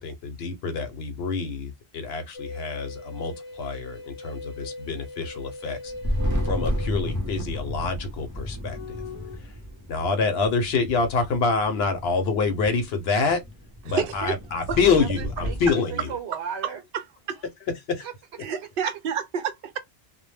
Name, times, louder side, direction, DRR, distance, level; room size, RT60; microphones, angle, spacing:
voice 1, 0.0-5.9 6.4-9.0 9.4-9.5 9.9-13.4 13.8-16.1 17.9-18.0, left 4 dB, 70° left, 0.8 m, -26 dB
sound 1, 2.3-7.9 8.7-9.4, left 3 dB, 50° left, 0.4 m, -40 dB
Thunder, 5.8-15.7, equal, 25° right, 0.5 m, -32 dB
voice 2, 13.9-14.3 14.7-14.8 17.3-17.4 18.4-19.8, right 7 dB, 60° right, 0.7 m, -29 dB
voice 3, 15.0-16.8 18.0-18.7, right 7 dB, 90° right, 1.0 m, -37 dB
2.1 x 2.1 x 3.2 m
omnidirectional pair, 1.1 m